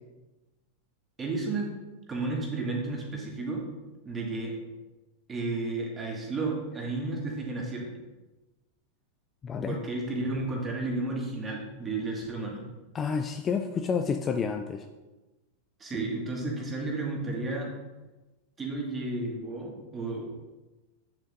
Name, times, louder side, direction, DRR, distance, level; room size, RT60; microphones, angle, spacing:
voice 1, 1.2-1.7 2.1-3.7 4.0-4.6 5.3-7.9 9.7-12.6 15.8-17.7 18.6-20.3, right 2 dB, 20° right, -1 dB, 1.9 m, -32 dB
voice 2, 9.4-9.8 12.9-14.9, left 6 dB, 25° left, 6 dB, 0.4 m, -29 dB
8.8 x 6.9 x 2.6 m, 1.1 s
figure-of-eight pair, 90°, 0 cm